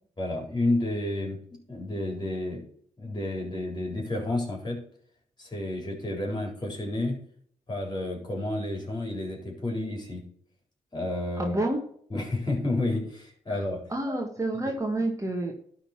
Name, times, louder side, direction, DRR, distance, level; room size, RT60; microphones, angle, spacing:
voice 1, 0.2-1.4 1.7-2.6 3.0-4.8 5.4-7.2 7.7-10.2 10.9-11.6 12.1-13.8, left 2 dB, 30° left, 1 dB, 4.1 m, -30 dB
voice 2, 11.4-11.8 13.5-13.6 13.9-15.5, right 2 dB, 20° right, 2 dB, 1.8 m, -28 dB
11.5 x 4.0 x 5.9 m, 0.62 s
supercardioid pair, 45°, 14 cm